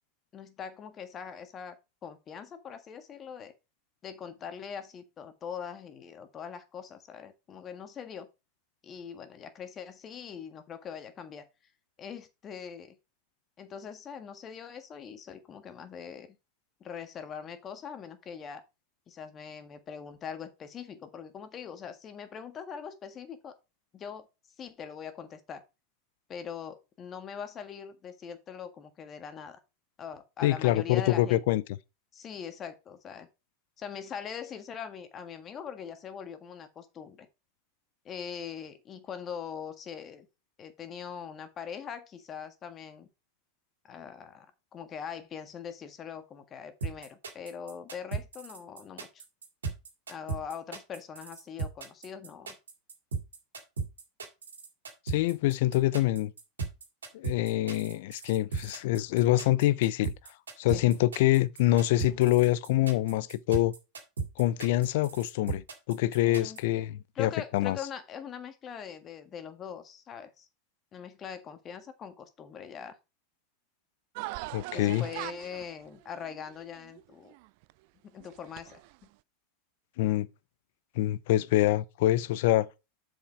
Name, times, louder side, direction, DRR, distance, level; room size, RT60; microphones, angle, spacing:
voice 1, 0.3-1.8 2.0-3.5 4.0-8.3 8.8-11.4 12.0-13.0 13.6-16.4 16.8-18.6 19.1-23.5 23.9-24.3 24.6-25.6 26.3-29.6 30.0-31.4 32.1-33.3 33.8-37.3 38.0-40.3 40.6-43.1 43.8-44.5 44.7-49.2 50.1-52.6 60.7-60.9 66.2-66.6 67.1-70.5 70.9-73.0 74.7-77.3 78.0-79.1, left 7 dB, 35° left, 1.6 m, -42 dB
voice 2, 30.4-31.6 55.1-56.3 57.1-60.1 60.6-63.7 64.4-67.8 74.5-75.1 80.0-80.3 81.0-82.7, left 15 dB, 65° left, 0.5 m, -25 dB
sound 1, 46.8-66.6, right 5 dB, 90° right, 2.2 m, -36 dB
sound 2, 74.1-77.7 78.2-79.0, right 21 dB, 60° right, 0.3 m, -42 dB
7.2 x 5.1 x 4.7 m
hypercardioid pair, 95°, 0 cm